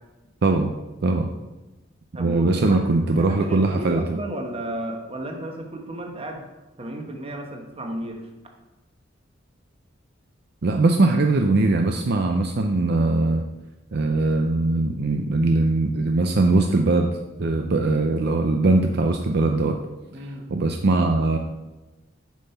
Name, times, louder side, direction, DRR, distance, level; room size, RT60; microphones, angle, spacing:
voice 1, 0.4-0.7 1.0-1.3 2.2-4.2 10.6-13.4 13.9-17.1 17.4-19.8 20.2-21.4, right 2 dB, 55° right, 3 dB, 0.5 m, -21 dB
voice 2, 2.1-6.5 6.8-8.3 20.1-20.4, right 1 dB, 30° right, 2 dB, 1.3 m, -33 dB
7.4 x 5.5 x 5.7 m, 1.1 s
head